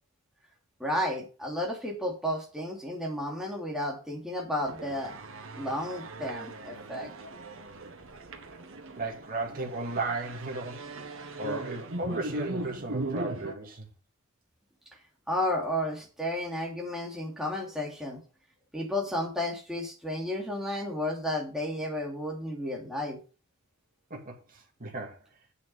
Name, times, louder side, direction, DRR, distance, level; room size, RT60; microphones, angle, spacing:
voice 1, 0.8-5.1 5.5-7.1 15.3-18.2 18.7-23.2, left 1 dB, ahead, 2.8 m, -32 dB
sound 1, 4.6-13.5, right 2 dB, 65° right, 1.7 m, -39 dB
voice 2, 8.9-10.8 11.4-13.9 24.1-25.2, right 2 dB, 40° right, 2.3 m, -35 dB
8.6 x 7.0 x 5.4 m
head